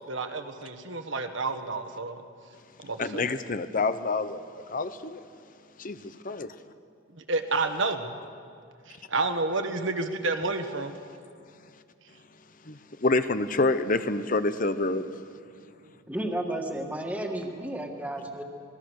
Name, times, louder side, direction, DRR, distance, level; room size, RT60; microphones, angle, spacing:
voice 1, 0.1-2.2 2.8-3.2 7.3-8.0 9.1-10.9, right 3 dB, 65° right, 6 dB, 1.6 m, -29 dB
voice 2, 3.0-4.4 4.7-5.2 5.8-6.5 12.7-15.1, left 3 dB, 40° left, 11 dB, 0.7 m, -27 dB
voice 3, 16.1-18.4, right 1 dB, 5° right, 3 dB, 1.8 m, -32 dB
26.5 x 20.5 x 6.5 m, 2.3 s
head